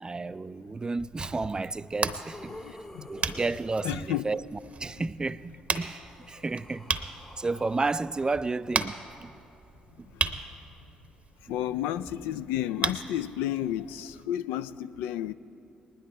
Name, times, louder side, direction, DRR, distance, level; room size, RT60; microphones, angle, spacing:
voice 1, 0.0-2.5 3.1-4.4 4.8-7.1 7.4-9.0 9.2-9.3, right 3 dB, 25° right, 0.3 m, -32 dB
sound 1, 1.0-1.1 1.6-4.4 5.6-9.5 10.5-10.6, left 1 dB, 15° left, 0.8 m, -50 dB
sound 2, 1.0-14.3, right 4 dB, 40° right, 0.8 m, -37 dB
voice 2, 2.5-3.3 3.8-4.2 10.1-10.4 11.5-15.3, left 12 dB, 70° left, 0.3 m, -32 dB
20.5 x 10.5 x 3.4 m
figure-of-eight pair, 45°, 4 cm